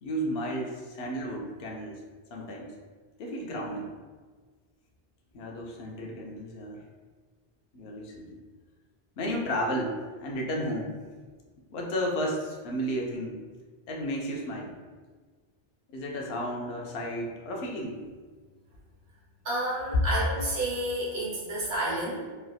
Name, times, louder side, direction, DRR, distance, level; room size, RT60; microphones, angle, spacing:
voice 1, 0.0-2.0 2.3-2.7 3.2-3.9 5.3-6.8 7.7-8.4 9.2-11.0 11.7-13.4 13.9-14.7 15.9-18.0, equal, 80° left, -1 dB, 0.8 m, -33 dB
voice 2, 19.4-22.2, right 1 dB, 80° right, -6 dB, 1.2 m, -30 dB
3.2 x 2.6 x 2.3 m, 1.4 s
omnidirectional pair, 1.0 m